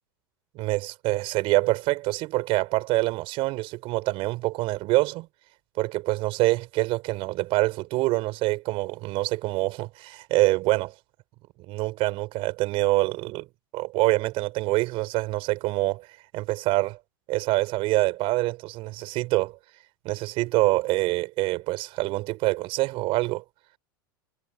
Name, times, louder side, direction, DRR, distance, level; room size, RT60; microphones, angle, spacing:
voice 1, 0.6-5.3 5.8-10.9 11.7-13.5 13.7-16.1 16.3-17.0 17.3-19.6 20.1-23.4, right 20 dB, 50° right, 5.2 m, -25 dB
hypercardioid pair, 90°, 12 cm